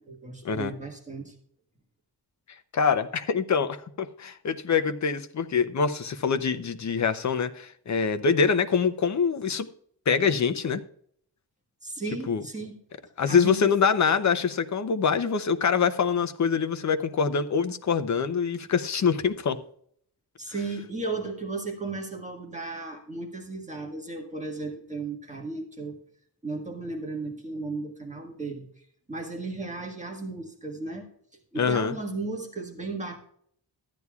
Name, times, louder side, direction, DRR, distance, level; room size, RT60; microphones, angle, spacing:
voice 1, 0.0-1.3 11.8-12.8 13.2-13.7 20.4-26.0 26.4-31.1 31.5-33.2, right 3 dB, 15° right, 1.5 m, -35 dB
voice 2, 2.7-9.7 10.1-10.8 12.3-12.4 13.2-19.6 31.6-31.9, left 6 dB, 45° left, 0.6 m, -25 dB
14.0 x 9.6 x 2.3 m
wide cardioid pair, 170°, 42 cm